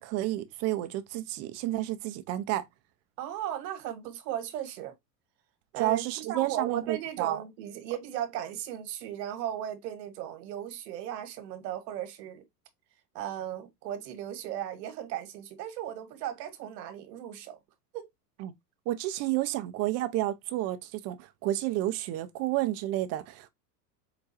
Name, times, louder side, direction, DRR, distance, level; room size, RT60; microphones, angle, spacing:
voice 1, 0.0-2.7 5.8-7.4 18.4-18.5 18.9-23.5, right 15 dB, 35° right, 0.4 m, -30 dB
voice 2, 3.2-4.9 5.7-12.4 13.1-17.6 17.9-18.1, right 11 dB, 75° right, 1.2 m, -36 dB
4.8 x 2.2 x 2.6 m
hypercardioid pair, 100°, 49 cm